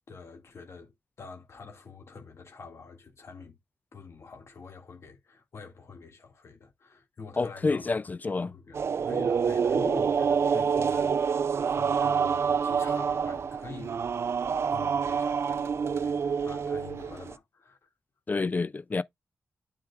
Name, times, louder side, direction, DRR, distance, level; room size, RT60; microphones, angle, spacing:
voice 1, 0.1-3.6 3.9-7.9 8.4-17.9, left 4 dB, 60° left, 2.0 m, -46 dB
voice 2, 7.4-8.5 18.3-19.0, left 3 dB, 30° left, 0.3 m, -28 dB
sound 1, 8.7-17.3, right 6 dB, 55° right, 0.4 m, -27 dB
9.5 x 4.6 x 2.3 m
cardioid pair, 75°, 5 cm